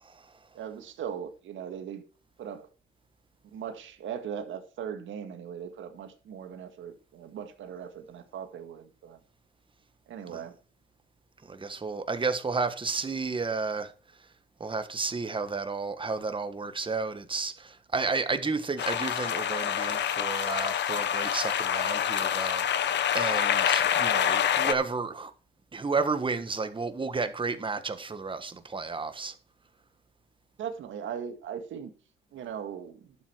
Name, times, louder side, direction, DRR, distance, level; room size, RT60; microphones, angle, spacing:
voice 1, 0.5-2.0 2.4-2.7 3.5-9.2 10.1-10.6 30.6-31.9 32.3-33.2, right 8 dB, 75° right, 1.9 m, -39 dB
voice 2, 11.5-13.9 14.6-25.3 25.7-29.3, right 4 dB, 25° right, 1.5 m, -32 dB
sound 1, 18.8-24.7, left 9 dB, 60° left, 0.9 m, -27 dB
11.5 x 7.6 x 4.6 m
cardioid pair, 90°, 20 cm